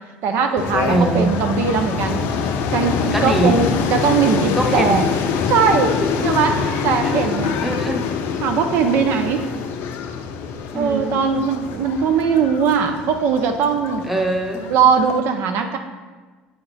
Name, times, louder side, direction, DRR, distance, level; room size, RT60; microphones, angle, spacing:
voice 1, 0.2-2.3 2.7-5.0 5.5-6.6 6.8-7.6 8.4-9.5 10.7-14.1 14.7-15.8, right 6 dB, 65° right, 5 dB, 0.5 m, -19 dB
sound 1, 0.6-15.2, left 6 dB, 60° left, 0.4 m, -25 dB
voice 2, 0.9-1.3 3.1-3.6 4.5-5.0 7.0-7.1 7.6-8.0 10.7-11.2 14.0-14.7, right 2 dB, 5° right, 2 dB, 0.9 m, -22 dB
8.3 x 2.9 x 4.0 m, 1.3 s
hypercardioid pair, 70°, 4 cm